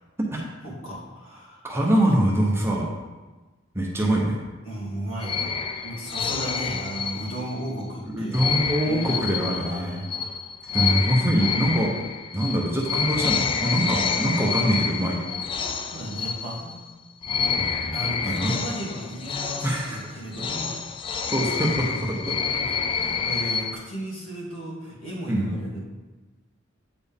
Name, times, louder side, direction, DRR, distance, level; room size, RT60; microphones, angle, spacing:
voice 1, 0.6-1.7 4.6-5.5 5.8-8.4 8.8-10.1 15.9-16.9 17.9-20.8 21.6-22.1 22.5-25.8, right 1 dB, 70° left, -5 dB, 2.3 m, -35 dB
voice 2, 1.6-2.9 3.7-4.4 8.1-10.0 10.7-11.9 12.3-15.2 17.6-18.5 19.6-20.0 21.3-22.4 25.3-25.5, right 1 dB, 10° right, -2 dB, 0.8 m, -24 dB
sound 1, 5.2-7.7 8.3-16.9 17.2-23.7, left 6 dB, 25° left, 0.3 m, -28 dB
8.2 x 4.4 x 3.5 m, 1.2 s
head